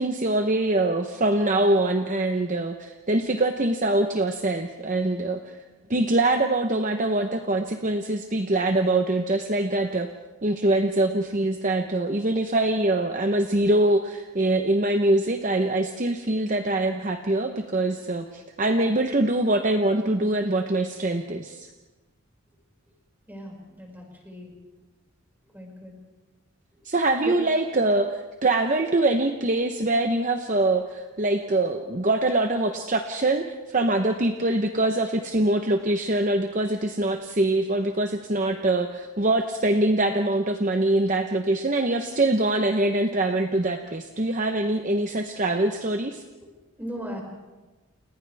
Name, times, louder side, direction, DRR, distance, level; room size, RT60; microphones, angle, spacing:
voice 1, 0.0-5.5 5.9-10.1 10.4-21.7 26.8-46.2, right 2 dB, 35° right, 5 dB, 0.9 m, -24 dB
voice 2, 23.3-24.5 25.5-25.9 27.2-27.3 46.8-47.2, equal, 10° right, -1 dB, 5.8 m, -37 dB
29.5 x 29.0 x 3.5 m, 1.2 s
head